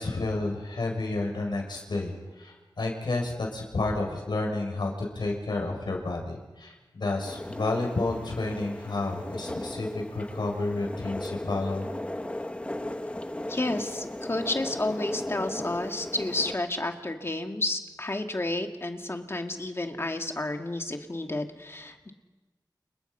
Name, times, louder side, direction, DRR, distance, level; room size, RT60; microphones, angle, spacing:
voice 1, 0.0-11.9, left 2 dB, 80° left, 1 dB, 7.0 m, -31 dB
sound 1, 7.3-16.5, left 1 dB, 15° left, 1.2 m, -36 dB
voice 2, 13.5-22.1, left 2 dB, 35° left, 4 dB, 2.3 m, -31 dB
29.5 x 29.5 x 5.7 m, 1.2 s
wide cardioid pair, 80°, 8 cm